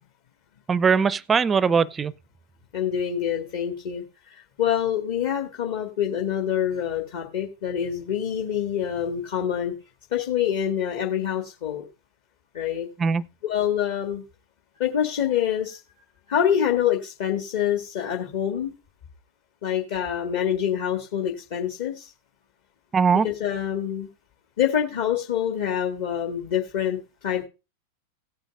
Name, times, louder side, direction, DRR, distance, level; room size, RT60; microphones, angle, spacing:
voice 1, 0.7-2.1 13.0-13.2 22.9-23.3, right 6 dB, 20° right, 0.4 m, -20 dB
voice 2, 2.7-9.7 10.1-11.8 12.5-12.9 13.4-14.2 14.8-15.8 16.3-18.7 19.6-22.1 23.2-24.1 24.6-27.0 27.2-27.5, left 9 dB, 50° left, 1.7 m, -26 dB
17.0 x 8.9 x 2.5 m
figure-of-eight pair, 90°, 0 cm